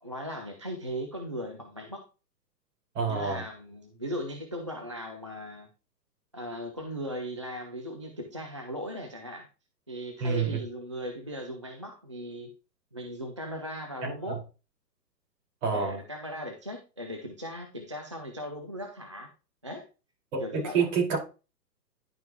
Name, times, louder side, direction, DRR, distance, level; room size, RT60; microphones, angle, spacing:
voice 1, 0.0-2.1 3.1-5.7 6.3-9.5 9.9-12.5 12.9-14.4 15.7-19.3 19.6-19.9 20.4-20.9, equal, 20° right, 0.3 m, -38 dB
voice 2, 2.9-3.4 10.2-10.6 14.0-14.4 15.6-16.0 20.3-21.2, right 5 dB, 50° right, 5.0 m, -28 dB
10.5 x 5.6 x 3.0 m
figure-of-eight pair, 125°, 50 cm